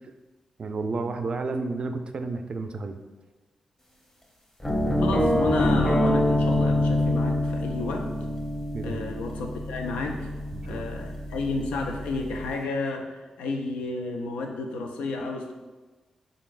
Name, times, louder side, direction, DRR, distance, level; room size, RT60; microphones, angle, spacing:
voice 1, 0.6-3.0 8.7-9.0 10.5-10.9, right 3 dB, 50° right, 7 dB, 0.4 m, -31 dB
sound 1, 4.6-12.5, left 1 dB, 20° left, 1.1 m, -26 dB
voice 2, 5.0-8.1 8.8-10.3 10.6-15.5, left 3 dB, 80° left, 3 dB, 0.4 m, -31 dB
3.8 x 3.7 x 2.5 m, 1.3 s
supercardioid pair, 45°, 2 cm